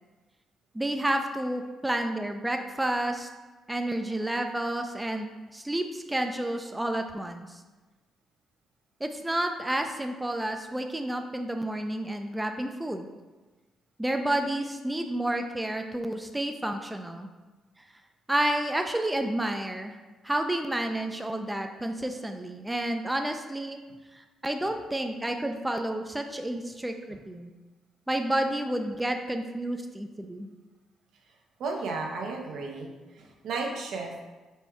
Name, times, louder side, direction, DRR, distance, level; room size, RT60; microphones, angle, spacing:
voice 1, 0.7-3.3 3.7-7.6 9.0-13.1 14.0-17.3 18.3-19.9 20.2-23.8 24.1-27.5 28.1-30.5, right 1 dB, 10° right, 5 dB, 0.3 m, -30 dB
voice 2, 31.6-32.9 33.2-34.2, right 3 dB, 75° right, 1 dB, 0.7 m, -33 dB
4.2 x 2.3 x 4.6 m, 1.2 s
cardioid pair, 90°, 0 cm